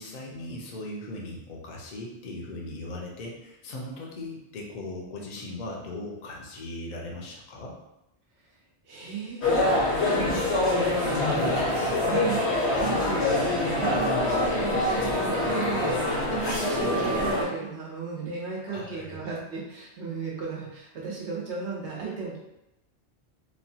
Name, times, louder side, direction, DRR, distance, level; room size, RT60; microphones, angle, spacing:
voice 1, 0.0-7.8 11.1-11.6 18.7-19.2, left 2 dB, 55° left, -2 dB, 0.6 m, -38 dB
voice 2, 8.9-9.7 10.1-11.2 11.8-22.4, right 5 dB, 80° right, -3 dB, 1.1 m, -35 dB
sound 1, 9.4-17.4, left 1 dB, 75° left, 1.1 m, -25 dB
3.0 x 2.2 x 2.7 m, 0.88 s
omnidirectional pair, 1.1 m